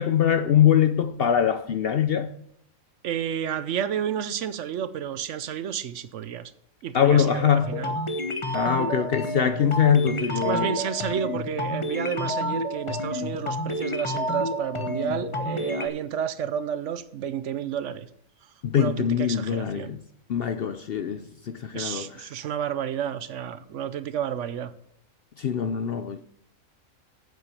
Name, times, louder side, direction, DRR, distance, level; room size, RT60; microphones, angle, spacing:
voice 1, 0.0-2.3 6.9-7.7 8.5-10.7 18.6-20.0 20.3-22.3 25.4-26.2, left 8 dB, 60° left, 0.6 m, -23 dB
voice 2, 3.0-6.5 6.8-7.9 10.4-18.1 18.8-20.0 21.7-24.7, right 9 dB, 65° right, 0.9 m, -31 dB
sound 1, 7.6-15.9, left 1 dB, 25° left, 0.9 m, -29 dB
8.1 x 7.7 x 6.8 m
omnidirectional pair, 1.4 m